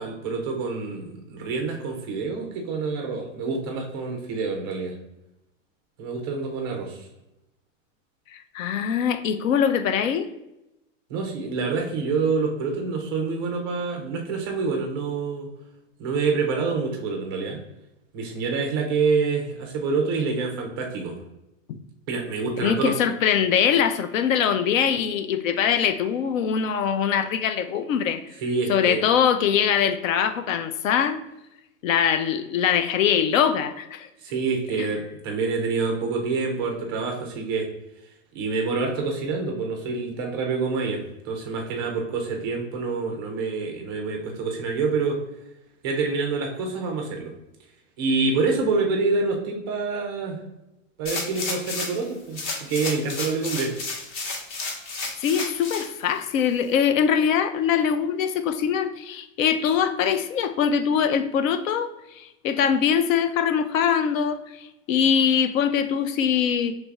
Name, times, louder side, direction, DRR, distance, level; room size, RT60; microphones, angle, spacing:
voice 1, 0.0-5.0 6.0-7.1 11.1-15.5 16.0-17.6 18.1-21.2 22.1-23.0 28.4-29.0 34.2-37.7 38.3-45.2 45.8-47.3 48.0-50.4 51.0-53.7, right 4 dB, 20° right, 1 dB, 0.3 m, -27 dB
voice 2, 8.5-10.3 22.6-28.2 28.7-31.2 31.8-34.1 55.2-61.9 62.2-66.7, left 8 dB, 75° left, 9 dB, 0.6 m, -22 dB
sound 1, 51.1-52.0 52.3-55.9 56.4-56.5, left 3 dB, 35° left, 0.9 m, -32 dB
3.2 x 2.5 x 4.4 m, 0.91 s
supercardioid pair, 155°, 40 cm